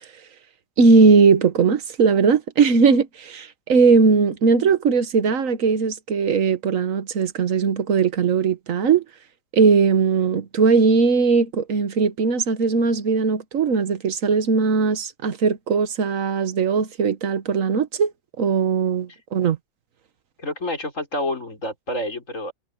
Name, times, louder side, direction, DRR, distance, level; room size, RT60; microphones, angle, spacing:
voice 1, 0.8-9.0 9.5-18.1 18.4-19.6, right 5 dB, 50° right, 1.4 m, -19 dB
voice 2, 20.4-22.5, left 1 dB, 40° left, 6.2 m, -28 dB
omnidirectional pair, 2.1 m